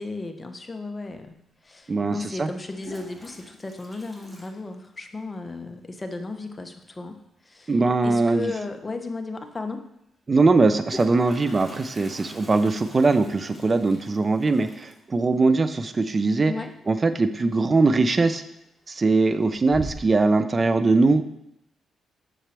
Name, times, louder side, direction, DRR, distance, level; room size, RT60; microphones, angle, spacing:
voice 1, 0.0-1.3 1.6-7.8 8.0-9.9 16.5-16.7, left 3 dB, 25° left, 6 dB, 0.9 m, -35 dB
Toilet flush, 1.2-1.3 2.5-5.3 5.6-5.7 5.9-6.0 6.3-6.7 8.4-8.5 8.9-9.0 10.5-17.2 17.5-17.9 18.4-18.9 19.3-20.3, right 1 dB, ahead, 1.7 m, -44 dB
voice 2, 1.9-2.5 7.7-8.5 10.3-16.5 16.9-18.4 18.9-21.2, right 3 dB, 35° right, 11 dB, 0.6 m, -21 dB
7.5 x 6.3 x 3.4 m, 0.79 s
cardioid pair, 70°, 0 cm